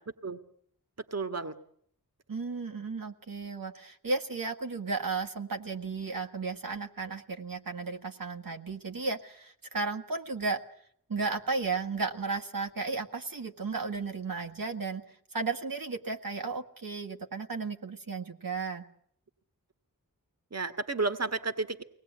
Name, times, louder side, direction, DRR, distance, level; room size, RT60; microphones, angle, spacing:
voice 1, 1.1-1.6 20.5-21.8, right 3 dB, 45° right, 9 dB, 1.8 m, -32 dB
voice 2, 2.3-10.6 11.1-15.0 15.3-18.9, right 4 dB, 75° right, 3 dB, 1.9 m, -34 dB
24.0 x 19.0 x 9.5 m, 0.66 s
wide cardioid pair, 70°, 35 cm